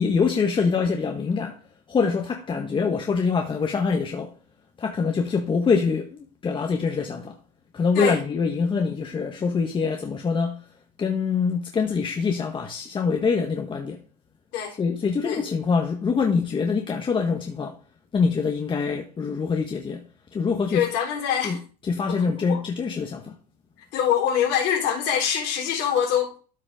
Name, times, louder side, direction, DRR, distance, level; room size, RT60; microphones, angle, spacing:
voice 1, 0.0-1.6 1.9-4.3 4.8-7.4 7.7-10.6 11.0-14.0 14.8-17.8 18.1-20.0 20.3-20.8 21.4-21.6 21.8-23.4, left 5 dB, 25° left, 1.5 m, -24 dB
voice 2, 20.7-21.6 22.1-22.6 23.9-26.3, left 9 dB, 55° left, 4.2 m, -24 dB
13.0 x 4.9 x 3.8 m
hypercardioid pair, 95°, 21 cm